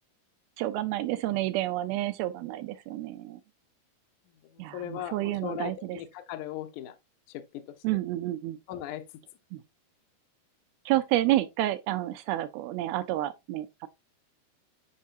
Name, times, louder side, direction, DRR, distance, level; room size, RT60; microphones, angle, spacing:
voice 1, 0.6-3.4 4.6-6.0 7.8-8.6 9.5-9.6 10.9-13.9, right 15 dB, 80° right, 2.3 m, -29 dB
voice 2, 4.5-7.0 7.3-7.7 8.7-9.0, left 11 dB, 75° left, 1.8 m, -38 dB
9.5 x 5.5 x 2.5 m
omnidirectional pair, 5.0 m